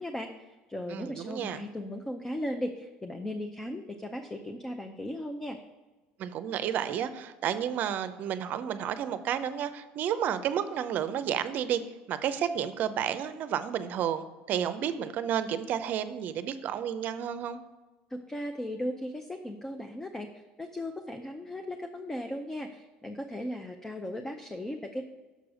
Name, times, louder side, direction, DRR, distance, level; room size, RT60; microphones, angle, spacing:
voice 1, 0.0-5.6 18.1-20.3 20.6-25.0, left 1 dB, 15° left, 5 dB, 0.6 m, -37 dB
voice 2, 0.9-1.6 6.2-11.8 12.1-17.6, right 9 dB, 55° right, 12 dB, 0.6 m, -31 dB
6.8 x 4.7 x 6.2 m, 1.2 s
supercardioid pair, 105°, 4 cm